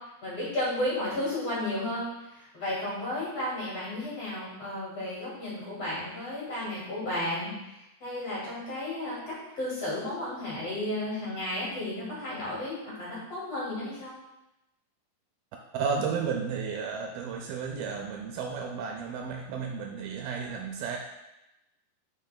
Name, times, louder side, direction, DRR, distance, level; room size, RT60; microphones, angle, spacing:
voice 1, 0.2-2.1 2.3-7.5 8.0-14.1, left 1 dB, 40° left, -8 dB, 2.8 m, -33 dB
voice 2, 15.7-21.0, right 6 dB, 80° right, 2 dB, 2.2 m, -33 dB
10.0 x 5.4 x 2.2 m, 0.94 s
omnidirectional pair, 4.6 m